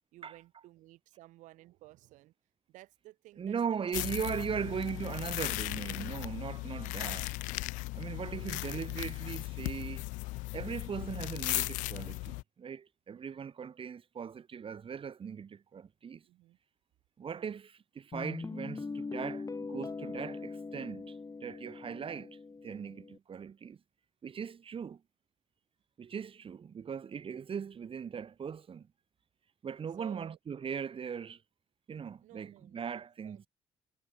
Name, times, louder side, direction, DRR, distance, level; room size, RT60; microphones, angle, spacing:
voice 1, 0.1-2.3 2.7-3.6 3.9-4.1 7.8-7.9 8.3-8.6 13.1-13.5 16.2-16.6 30.0-30.4 32.2-32.9 33.2-33.5, right 17 dB, 80° right, 3.6 m, -55 dB
voice 2, 3.4-7.4 7.9-10.1 10.5-16.2 17.2-22.4 22.6-23.8 24.2-25.0 26.0-28.9 29.6-31.4 31.9-33.4, right 7 dB, 45° right, 1.2 m, -39 dB
sound 1, 3.9-12.4, left 23 dB, 85° left, 0.6 m, -37 dB
Guitar, 18.1-23.2, left 4 dB, 30° left, 1.9 m, -41 dB
supercardioid pair, 60°, 13 cm